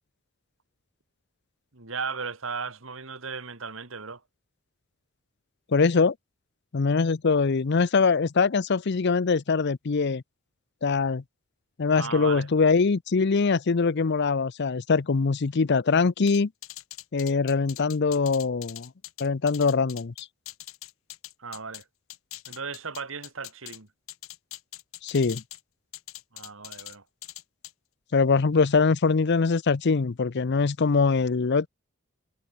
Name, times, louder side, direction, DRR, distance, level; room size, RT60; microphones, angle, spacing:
voice 1, 1.7-4.2 11.9-12.5 21.4-21.8 22.5-23.9 26.3-27.0, right 5 dB, 70° right, 2.3 m, -36 dB
voice 2, 5.7-6.1 6.7-10.2 10.8-11.2 11.8-16.5 17.1-18.9 19.2-20.1 25.0-25.4 28.1-31.7, left 4 dB, 55° left, 0.6 m, -23 dB
sound 1, 16.3-21.8 22.1-23.8 24.1-25.6 25.9-26.9 27.2-27.7, left 15 dB, 80° left, 1.4 m, -42 dB
head